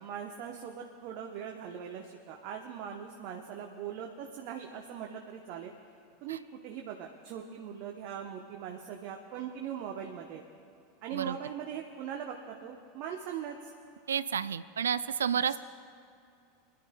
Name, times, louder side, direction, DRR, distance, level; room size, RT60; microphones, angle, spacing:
voice 1, 0.0-5.7 6.2-10.4 11.0-13.7 15.3-15.6, right 8 dB, 50° right, 2 dB, 0.9 m, -41 dB
voice 2, 14.1-15.6, right 8 dB, 75° right, 15 dB, 0.3 m, -30 dB
27.5 x 11.5 x 2.2 m, 2.5 s
figure-of-eight pair, 85°, 0 cm